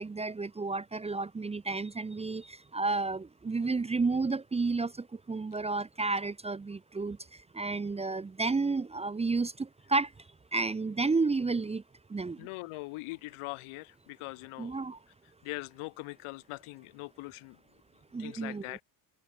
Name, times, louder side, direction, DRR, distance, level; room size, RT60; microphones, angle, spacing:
voice 1, 0.0-10.1 10.5-11.8 12.1-12.5 14.6-15.0 18.1-18.8, right 3 dB, 15° right, 0.8 m, -31 dB
voice 2, 12.4-14.8 15.4-17.6 18.2-18.8, left 23 dB, 85° left, 3.3 m, -41 dB
cardioid pair, 145°, 49 cm